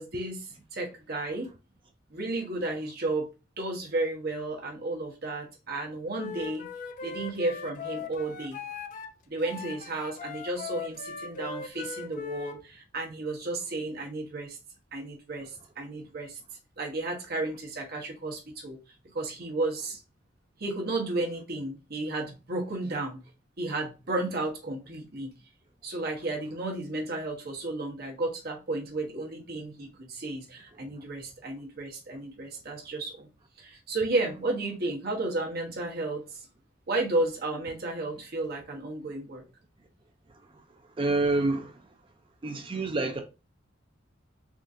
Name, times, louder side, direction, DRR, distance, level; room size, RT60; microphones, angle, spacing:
voice 1, 0.0-1.5 2.1-3.3 3.6-6.7 7.0-8.6 9.3-14.6 14.9-16.4 16.8-18.8 19.1-20.0 20.6-23.2 23.6-25.3 25.8-33.3 33.6-36.5 36.9-39.4, right 2 dB, 50° right, 0.9 m, -33 dB
Wind instrument woodwind instrument, 6.1-9.1 9.4-12.6, left 5 dB, 40° left, 0.3 m, -39 dB
voice 2, 41.0-41.9 42.4-43.2, right 2 dB, 25° right, 0.4 m, -28 dB
3.6 x 2.5 x 2.5 m
head